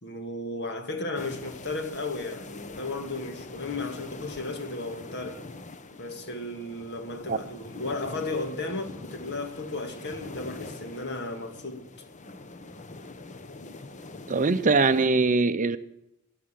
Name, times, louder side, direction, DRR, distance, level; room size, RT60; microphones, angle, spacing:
voice 1, 0.0-5.4 6.0-11.9, left 2 dB, 50° left, 2.1 m, -34 dB
sound 1, 1.1-15.1, left 2 dB, 35° left, 0.9 m, -44 dB
voice 2, 14.3-15.8, right 3 dB, 35° right, 0.7 m, -22 dB
15.0 x 11.5 x 7.6 m
head